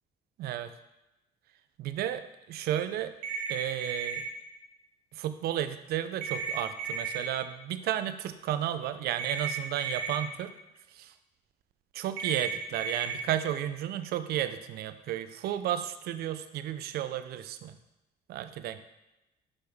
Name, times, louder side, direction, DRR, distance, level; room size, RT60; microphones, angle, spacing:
voice 1, 0.4-0.7 1.8-3.1 3.5-4.3 5.1-10.5 10.9-11.1 11.9-17.8 18.3-18.8, right 11 dB, 70° right, 11 dB, 0.5 m, -33 dB
sound 1, 3.2-4.2 6.2-7.2 9.2-10.2 12.2-13.2, right 5 dB, 90° right, 1.1 m, -34 dB
6.1 x 5.2 x 3.4 m, 0.97 s
cardioid pair, 110°, 17 cm